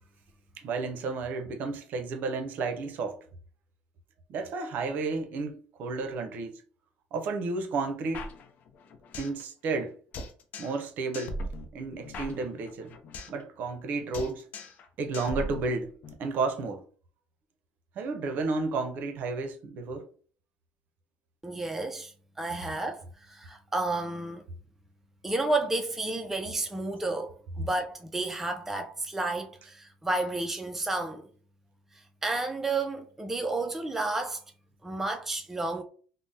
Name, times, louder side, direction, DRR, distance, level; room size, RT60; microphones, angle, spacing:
voice 1, 0.6-3.2 4.3-6.6 7.1-8.3 9.2-9.9 10.6-11.4 11.7-13.0 13.3-14.5 15.0-16.8 18.0-20.1, right 3 dB, 60° right, 0.6 m, -32 dB
sound 1, 8.1-9.4 9.7-9.8 10.1-10.9 11.1-13.4 13.7-13.9 14.1-14.9 15.1-16.1, left 1 dB, 55° left, 0.5 m, -39 dB
voice 2, 21.4-24.5 25.2-31.3 32.2-34.4 34.8-35.8, right 2 dB, 10° right, 0.4 m, -31 dB
3.4 x 2.0 x 2.7 m
cardioid pair, 105°, 3 cm